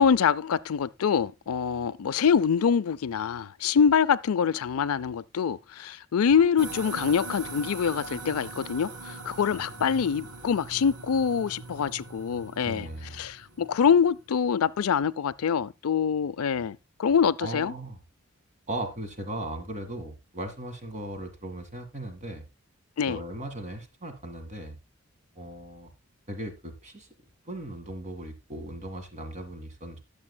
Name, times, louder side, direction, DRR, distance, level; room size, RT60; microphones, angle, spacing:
voice 1, 0.0-12.9 13.2-17.7 23.0-23.2, left 7 dB, 80° left, 0.4 m, -25 dB
sound 1, 6.6-14.2, right 3 dB, 85° right, 1.7 m, -41 dB
voice 2, 9.5-10.1 12.6-13.3 17.4-18.0 18.7-22.4 23.1-24.8 25.4-25.9 26.3-27.1 27.4-30.0, right 1 dB, 35° right, 2.0 m, -38 dB
19.5 x 7.0 x 2.2 m
head